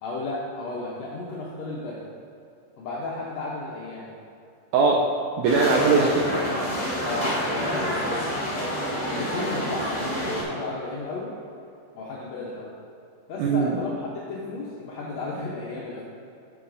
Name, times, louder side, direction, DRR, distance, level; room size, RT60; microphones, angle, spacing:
voice 1, 0.0-2.0 2.8-4.1 7.0-8.6 9.1-11.3 11.9-12.7 13.3-16.0, left 3 dB, 75° left, -5 dB, 1.6 m, -34 dB
voice 2, 4.7-5.1 5.4-6.4 13.4-13.8, right 4 dB, 80° right, -2 dB, 1.9 m, -20 dB
sound 1, 5.4-10.4, equal, 60° left, 0.4 m, -28 dB
9.1 x 7.1 x 2.6 m, 2.6 s
omnidirectional pair, 4.0 m